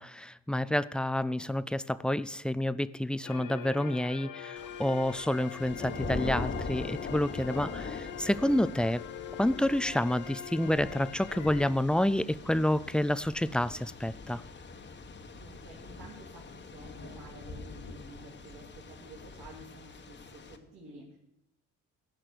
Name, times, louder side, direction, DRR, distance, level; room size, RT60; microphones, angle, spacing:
voice 1, 0.0-9.0 9.4-14.4, left 1 dB, 5° left, 17 dB, 0.3 m, -29 dB
sound 1, 3.2-11.7, left 9 dB, 80° left, 0.9 m, -44 dB
Thunder / Rain, 4.6-20.6, left 4 dB, 40° left, 1.2 m, -42 dB
voice 2, 15.3-21.2, right 1 dB, 85° right, -6 dB, 3.0 m, -51 dB
15.0 x 5.9 x 6.7 m, 0.86 s
cardioid pair, 90°, 30 cm